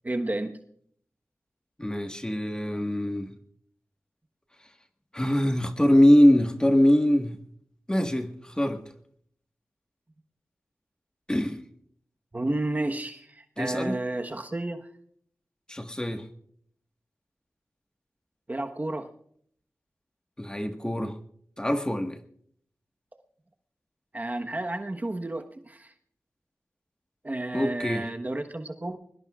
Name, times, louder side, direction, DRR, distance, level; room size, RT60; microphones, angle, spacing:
voice 1, 0.0-0.6 12.3-14.9 18.5-19.1 24.1-25.9 27.2-29.0, right 2 dB, 30° right, 5 dB, 1.2 m, -31 dB
voice 2, 1.8-3.3 5.1-7.4 7.9-8.8 11.3-11.6 13.6-14.0 15.7-16.2 20.4-21.1 21.6-22.2 27.5-28.1, left 1 dB, 15° left, 5 dB, 1.5 m, -23 dB
23.5 x 20.5 x 2.4 m, 0.64 s
wide cardioid pair, 60°, 5 cm